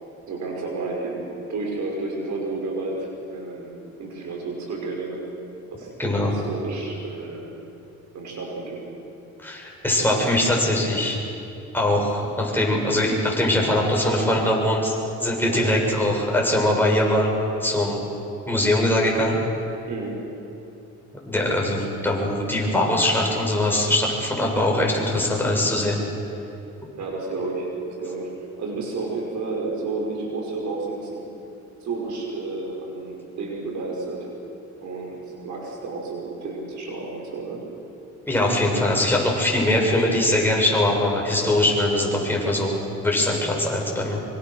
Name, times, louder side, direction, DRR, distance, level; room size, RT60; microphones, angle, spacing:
voice 1, 0.3-1.2 1.5-3.7 4.0-5.2 5.7-7.6 8.1-8.9 10.0-10.3 15.5-15.6 19.9-20.2 27.0-28.3 28.6-31.3 31.8-34.3 34.8-37.7, right 3 dB, 70° right, -1 dB, 5.8 m, -31 dB
voice 2, 6.0-6.3 9.4-11.2 11.7-15.0 15.2-17.3 17.6-18.0 18.5-19.4 21.3-26.0 38.3-42.8 43.0-44.2, left 1 dB, 5° left, -2 dB, 7.3 m, -22 dB
25.5 x 25.0 x 6.6 m, 2.8 s
cardioid pair, 90°, 30 cm